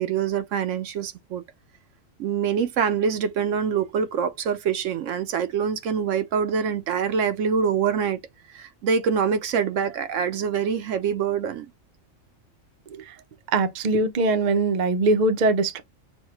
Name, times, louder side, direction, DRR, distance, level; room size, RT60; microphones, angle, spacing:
voice 1, 0.0-1.4 2.2-8.2 8.5-11.7, right 7 dB, 75° right, 0.9 m, -25 dB
voice 2, 13.5-15.8, right 3 dB, 45° right, 0.6 m, -21 dB
6.2 x 2.2 x 3.0 m
omnidirectional pair, 1.4 m